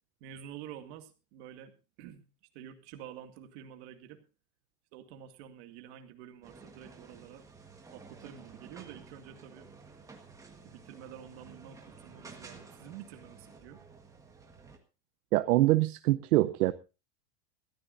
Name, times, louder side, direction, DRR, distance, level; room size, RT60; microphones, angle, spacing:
voice 1, 0.2-2.3 2.5-4.2 4.9-7.4 7.9-9.7 10.6-13.8, right 10 dB, 45° right, 7 dB, 2.3 m, -49 dB
sound 1, 6.4-14.8, right 4 dB, 5° right, 1.5 m, -52 dB
voice 2, 15.3-16.7, right 17 dB, 65° right, 11 dB, 0.9 m, -24 dB
21.5 x 14.0 x 2.6 m, 0.30 s
supercardioid pair, 175°, 47 cm